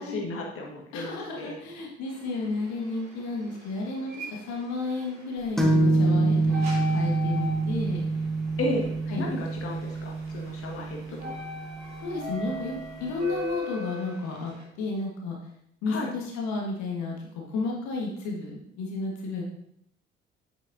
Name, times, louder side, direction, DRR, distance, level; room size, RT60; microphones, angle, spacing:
voice 1, 0.0-1.6 8.6-8.9 9.2-11.4 15.9-16.1, left 1 dB, 45° left, 0 dB, 1.5 m, -33 dB
voice 2, 0.9-6.6 6.9-8.0 9.1-9.3 12.0-14.5 14.8-15.3 15.8-17.1 17.5-19.4, left 3 dB, 60° left, -1 dB, 1.5 m, -32 dB
sound 1, 2.1-14.6, left 2 dB, 60° right, 2.7 m, -41 dB
sound 2, 5.6-13.1, right 3 dB, ahead, 1.4 m, -26 dB
8.4 x 7.4 x 2.6 m, 0.74 s
figure-of-eight pair, 45°, 31 cm